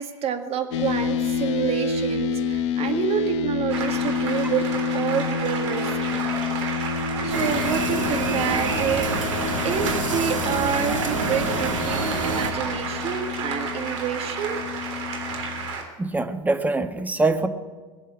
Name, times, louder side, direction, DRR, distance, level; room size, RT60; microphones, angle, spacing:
voice 1, 0.0-4.7 4.9-6.2 7.2-9.4 9.6-14.6, right 8 dB, 40° right, 6 dB, 2.0 m, -28 dB
sound 1, 0.7-15.8, left 5 dB, 65° left, 1.1 m, -29 dB
sound 2, 3.7-15.8, right 5 dB, 70° right, 3.3 m, -31 dB
sound 3, 7.3-12.5, right 2 dB, 85° right, 2.0 m, -27 dB
voice 2, 16.0-17.5, right 2 dB, 10° right, 7 dB, 1.4 m, -23 dB
19.5 x 7.4 x 9.9 m, 1.4 s
hypercardioid pair, 85°, 16 cm